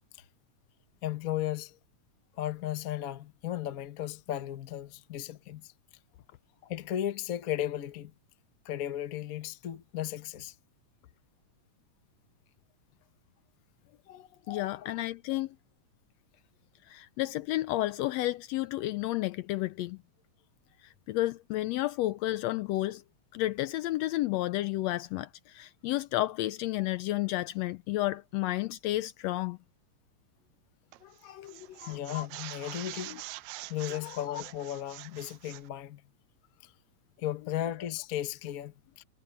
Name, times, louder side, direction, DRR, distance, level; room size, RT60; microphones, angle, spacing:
voice 1, 1.0-1.8 2.4-5.7 6.6-8.1 8.6-10.5 14.5-14.7 31.9-33.2 33.7-36.0 37.2-39.0, left 12 dB, 60° left, 0.9 m, -35 dB
voice 2, 14.1-15.5 16.9-20.0 21.1-23.0 23.3-25.3 25.5-29.6 31.2-31.9 33.1-33.2 34.0-34.2, left 16 dB, 80° left, 1.6 m, -31 dB
sound 1, 30.9-31.2 31.5-35.7, right 17 dB, 85° right, 2.0 m, -45 dB
omnidirectional pair, 3.3 m